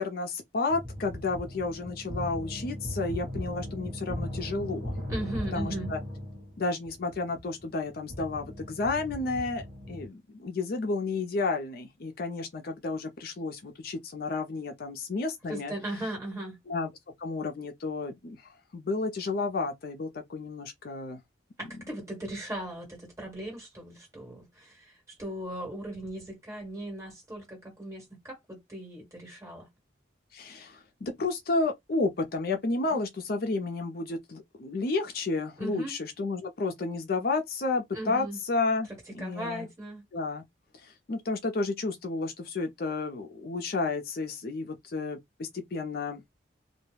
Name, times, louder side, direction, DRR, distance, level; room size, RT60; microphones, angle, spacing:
voice 1, 0.0-4.9 5.5-6.0 6.6-15.7 16.7-16.9 17.2-18.4 18.7-21.2 30.3-38.9 39.1-39.7 40.1-40.4 40.8-46.2, left 3 dB, 50° left, 0.5 m, -31 dB
sound 1, 0.7-10.1, left 1 dB, 35° right, 1.1 m, -38 dB
voice 2, 5.1-5.9 15.5-16.6 21.6-29.7 32.8-33.0 35.6-35.9 37.9-38.4 39.2-40.0, right 1 dB, 15° right, 1.4 m, -38 dB
2.2 x 2.0 x 3.2 m
head